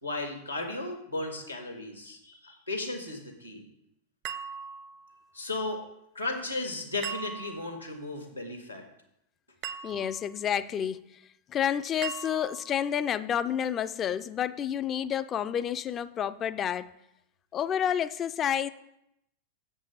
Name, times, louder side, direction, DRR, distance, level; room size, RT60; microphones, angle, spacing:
voice 1, 0.0-3.6 5.3-5.8 6.1-8.8, left 2 dB, 90° left, 4 dB, 1.6 m, -35 dB
sound 1, 4.3-5.2 7.0-7.8 9.6-10.3 12.0-12.8, right 7 dB, 40° right, 0.5 m, -39 dB
voice 2, 9.8-11.2 11.5-16.9 17.5-18.7, left 9 dB, 25° left, 15 dB, 0.4 m, -29 dB
7.3 x 5.4 x 6.7 m, 0.80 s
figure-of-eight pair, 90°, 0 cm